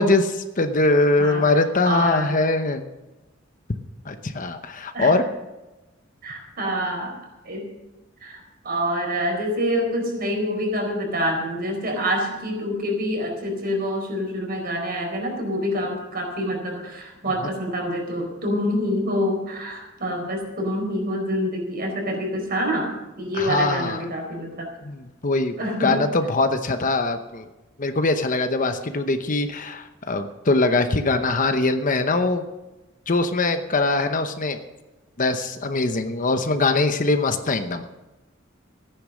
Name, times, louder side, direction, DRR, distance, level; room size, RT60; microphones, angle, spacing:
voice 1, 0.0-2.9 4.0-5.3 23.4-24.0 24.8-27.5 27.8-32.5 33.1-34.6 35.2-37.8, left 2 dB, 40° left, 8 dB, 0.9 m, -22 dB
voice 2, 1.2-2.3 4.9-5.1 6.2-7.2 7.4-7.7 8.2-24.7 25.6-26.0, equal, 50° right, 2 dB, 4.4 m, -26 dB
15.0 x 10.0 x 6.3 m, 1.0 s
head